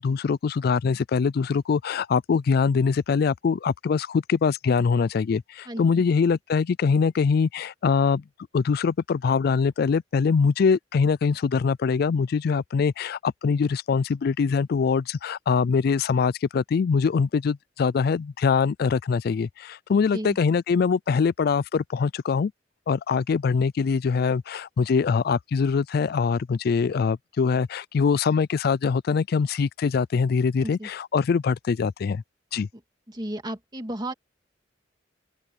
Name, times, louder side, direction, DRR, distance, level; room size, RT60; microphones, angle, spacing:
voice 1, 0.0-8.2 8.5-22.5 22.9-32.2 32.5-32.7, left 5 dB, 55° left, 0.3 m, -23 dB
voice 2, 5.7-6.0 20.1-20.4 30.6-30.9 33.1-34.1, right 1 dB, 25° right, 2.3 m, -33 dB
open air
head